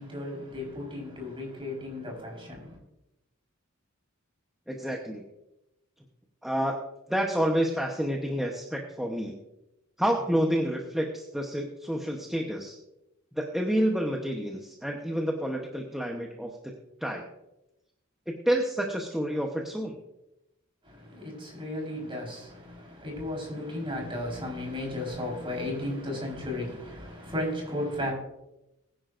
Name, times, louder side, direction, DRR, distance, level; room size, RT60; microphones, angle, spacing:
voice 1, 0.0-2.8 20.8-28.1, left 1 dB, 25° right, 4.4 m, -35 dB
voice 2, 4.7-5.2 6.4-6.8 7.1-9.4 10.0-12.8 13.3-16.7 17.0-17.2 18.3-19.9, equal, ahead, 1.0 m, -29 dB
21.0 x 10.5 x 2.6 m
head